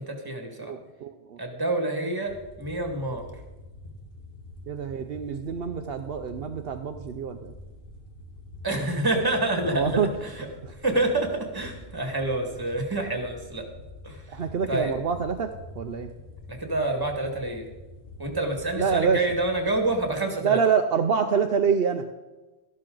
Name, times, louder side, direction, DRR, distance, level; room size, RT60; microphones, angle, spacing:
voice 1, 0.0-0.7 1.4-3.2 8.6-10.0 10.8-13.7 14.0-14.2 14.7-14.9 16.5-17.7 18.2-20.6, right 2 dB, 20° right, 3 dB, 1.9 m, -27 dB
voice 2, 0.6-1.4 4.7-7.5 9.6-10.1 10.6-10.7 14.3-16.1 18.8-19.2 20.4-22.0, right 6 dB, 65° right, 6 dB, 0.9 m, -26 dB
sound 1, 2.2-20.0, left 2 dB, 55° left, 1.8 m, -45 dB
13.5 x 12.0 x 3.9 m, 1.1 s
omnidirectional pair, 1.1 m